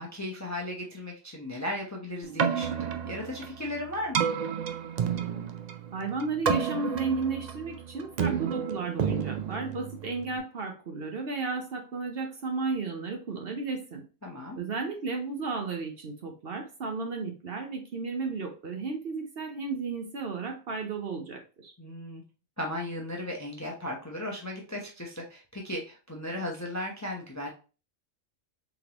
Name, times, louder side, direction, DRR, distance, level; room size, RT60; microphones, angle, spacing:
voice 1, 0.0-4.3 14.2-14.6 21.8-22.2 22.6-27.5, left 1 dB, 20° left, -1 dB, 0.6 m, -36 dB
Keyboard (musical), 2.2-10.4, right 7 dB, 80° right, 0.3 m, -31 dB
voice 2, 5.9-14.0 14.6-21.7, right 4 dB, 55° right, 3 dB, 0.9 m, -33 dB
3.9 x 3.5 x 2.9 m, 0.34 s
omnidirectional pair, 1.3 m